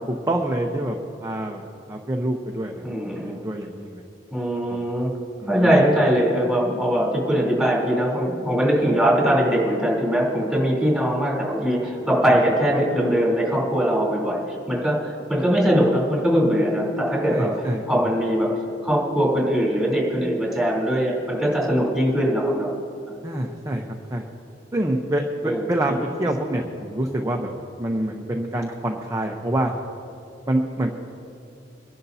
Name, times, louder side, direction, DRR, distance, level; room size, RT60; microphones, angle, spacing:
voice 1, 0.1-1.6 1.9-4.0 4.7-4.8 5.4-5.8 12.3-12.4 17.3-17.8 23.2-23.8 24.1-24.3 24.7-27.5 27.8-29.7 30.5-30.9, right 1 dB, 20° right, 1 dB, 0.8 m, -26 dB
voice 2, 2.8-3.4 4.3-5.1 5.5-17.5 17.9-18.5 18.8-22.7 25.4-26.0, equal, ahead, -4 dB, 3.4 m, -21 dB
27.5 x 11.0 x 2.8 m, 2.6 s
head